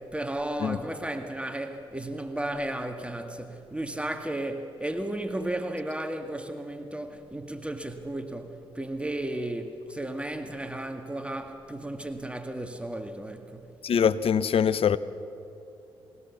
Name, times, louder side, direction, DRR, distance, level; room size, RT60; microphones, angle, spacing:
voice 1, 0.0-13.7, right 1 dB, 10° right, 1.7 m, -34 dB
voice 2, 13.8-15.0, left 7 dB, 55° left, 0.8 m, -23 dB
22.0 x 17.0 x 7.2 m
supercardioid pair, 50°, 11 cm